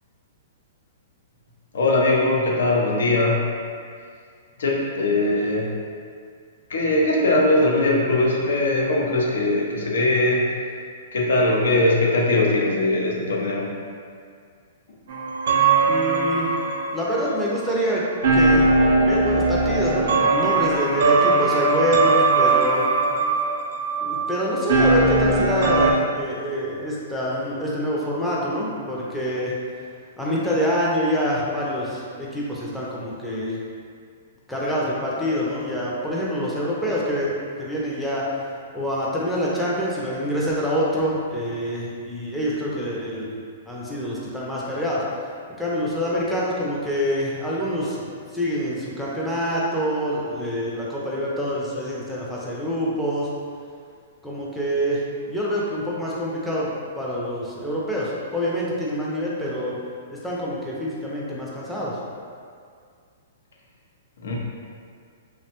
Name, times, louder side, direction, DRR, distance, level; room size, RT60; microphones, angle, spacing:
voice 1, 1.7-3.4 4.6-5.7 6.7-10.5 11.1-13.7 64.2-64.3, left 2 dB, 80° left, -2 dB, 0.5 m, -20 dB
sound 1, 15.1-25.9, right 3 dB, 65° right, 0.4 m, -20 dB
voice 2, 15.9-16.5 16.9-18.0 18.3-18.6 19.0-22.9 24.0-29.5 30.2-33.6 34.5-38.3 38.7-43.4 43.7-45.0 45.6-53.3 54.2-59.8 60.1-62.0, equal, ahead, -7 dB, 0.4 m, -26 dB
2.8 x 2.1 x 2.8 m, 2.2 s
hypercardioid pair, 145°, 0 cm